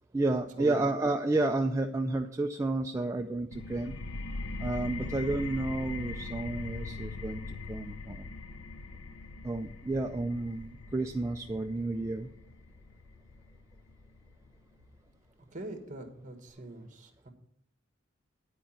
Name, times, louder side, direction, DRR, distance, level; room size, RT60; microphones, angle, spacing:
voice 1, 0.1-4.0 4.6-8.3 9.4-12.3, right 2 dB, 15° right, 3 dB, 0.3 m, -31 dB
sound 1, 3.5-14.9, left 3 dB, 80° left, 0.7 m, -41 dB
voice 2, 15.5-17.3, right 1 dB, 40° right, 6 dB, 1.5 m, -42 dB
10.0 x 5.0 x 7.3 m, 0.72 s
head